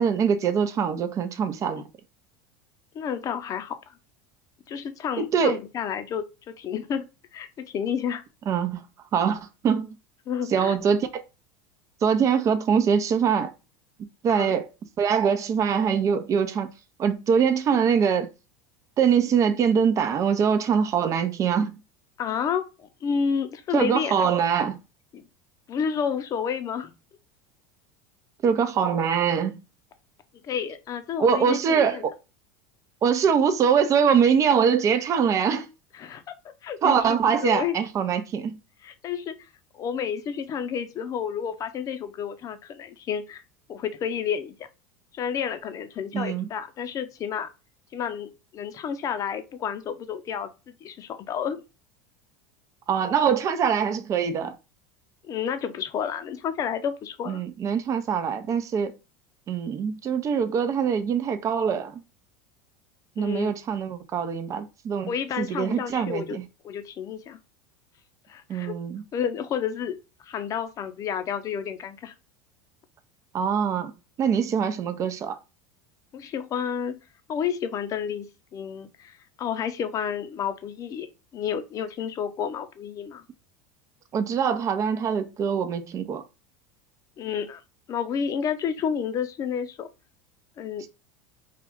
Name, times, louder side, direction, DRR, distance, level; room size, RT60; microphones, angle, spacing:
voice 1, 0.0-1.8 5.2-5.6 8.5-8.8 9.1-10.0 10.5-11.2 12.0-13.5 14.2-14.7 15.0-16.7 17.0-18.3 19.0-21.7 23.7-24.8 28.4-29.6 31.2-32.1 33.0-35.7 36.8-38.6 46.1-46.5 52.9-54.5 57.3-58.9 59.5-62.0 63.2-65.1 65.4-66.4 68.5-69.0 73.3-73.9 74.2-75.4 84.1-86.2 90.8-90.9, right 7 dB, 35° right, 0.7 m, -23 dB
voice 2, 2.9-3.8 4.7-7.1 7.3-8.2 10.3-10.8 14.3-14.5 22.2-24.1 25.1-25.2 25.7-26.9 30.4-32.0 35.9-36.3 36.6-37.8 38.8-39.4 39.7-43.4 43.7-44.6 45.1-47.5 47.9-50.5 50.8-51.6 55.3-57.4 63.2-63.5 65.1-66.4 66.6-67.4 68.3-68.8 69.1-72.1 76.1-77.0 77.3-78.3 78.5-81.1 81.3-83.2 87.2-87.6 87.9-89.9 90.6-90.9, left 7 dB, 40° left, 0.7 m, -30 dB
4.6 x 2.4 x 3.6 m
hypercardioid pair, 95°, 9 cm